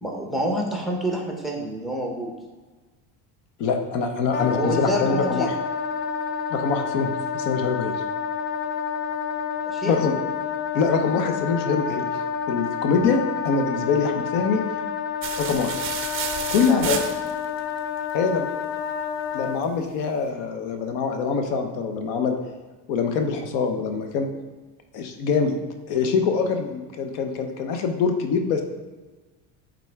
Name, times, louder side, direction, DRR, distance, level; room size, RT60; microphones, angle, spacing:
voice 1, 0.0-2.3 4.5-5.5 9.6-9.9 16.6-17.1, right 1 dB, ahead, 0 dB, 0.9 m, -28 dB
voice 2, 3.6-5.5 6.5-7.9 9.8-10.2 10.7-12.1 12.5-13.2 13.4-14.6 15.4-15.7 16.5-17.0 18.1-18.5 19.3-22.4 22.9-24.3 24.9-25.6 25.9-28.6, left 5 dB, 75° left, 6 dB, 1.0 m, -24 dB
Wind instrument woodwind instrument, 4.3-19.6, left 7 dB, 50° left, 0.7 m, -29 dB
sound 1, 15.2-17.6, right 8 dB, 30° right, 0.5 m, -31 dB
9.1 x 3.9 x 3.5 m, 1.3 s
cardioid pair, 140°, 43 cm